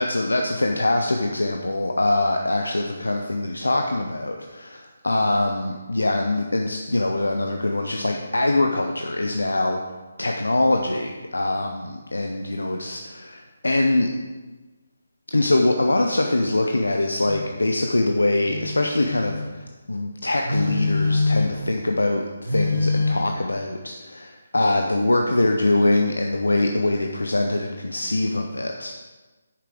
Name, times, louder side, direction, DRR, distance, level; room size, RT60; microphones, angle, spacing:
voice 1, 0.0-9.8 10.2-14.1 15.3-28.9, left 2 dB, 75° left, 3 dB, 0.7 m, -23 dB
Telephone, 17.3-17.5 18.4-19.5 20.4-21.7 22.4-23.1, left 3 dB, 85° right, 3.6 m, -24 dB
9.5 x 6.7 x 4.9 m, 1.2 s
figure-of-eight pair, 145°, 0 cm